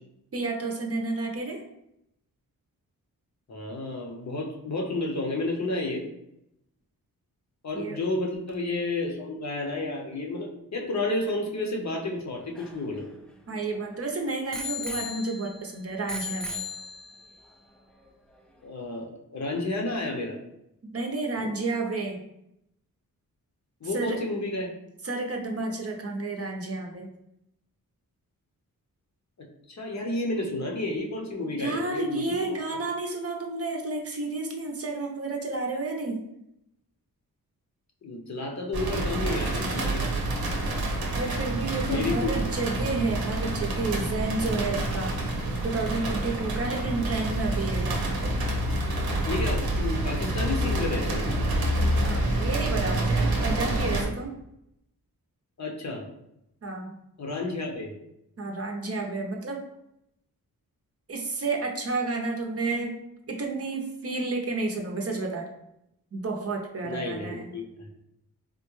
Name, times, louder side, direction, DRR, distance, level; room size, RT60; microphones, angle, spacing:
voice 1, 0.3-1.6 7.7-8.0 13.5-16.6 20.9-22.2 23.9-24.2 25.0-27.1 31.5-36.2 41.2-45.1 45.6-48.1 52.0-54.3 56.6-57.0 58.4-59.6 61.1-62.9 63.3-65.5 66.1-67.5, right 3 dB, 40° right, 2 dB, 0.6 m, -31 dB
voice 2, 3.5-6.0 7.6-13.1 18.6-20.4 21.4-21.5 23.8-24.7 29.4-32.6 38.0-40.1 41.9-42.3 49.3-51.3 55.6-56.1 57.2-57.9 66.8-67.9, left 2 dB, 50° left, 0 dB, 0.7 m, -31 dB
Bicycle bell, 12.2-13.9 14.5-15.7 16.1-17.3 18.1-18.2, left 3 dB, ahead, 0.3 m, -37 dB
sound 1, 38.7-54.1, right 1 dB, 80° right, 0.8 m, -27 dB
3.6 x 2.1 x 3.0 m, 0.81 s
cardioid pair, 65°, 36 cm